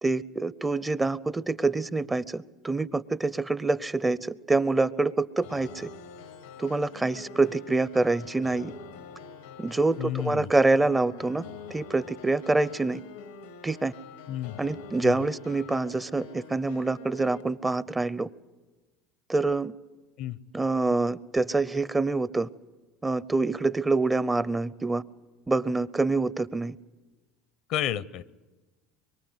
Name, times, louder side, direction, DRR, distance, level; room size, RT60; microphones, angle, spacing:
voice 1, 0.0-5.9 6.6-8.7 9.6-11.5 11.7-13.0 13.6-13.9 14.6-18.3 19.3-19.7 20.5-22.5 23.0-25.0 25.5-26.7, right 3 dB, 15° right, 16 dB, 0.7 m, -26 dB
sound 1, 5.4-17.4, left 6 dB, 90° left, 1.3 m, -46 dB
voice 2, 10.0-10.5 14.3-14.6 15.0-15.2 20.2-20.4 27.7-28.2, left 11 dB, 65° left, 17 dB, 0.8 m, -31 dB
24.0 x 23.0 x 8.1 m, 1.2 s
supercardioid pair, 90°, 0 cm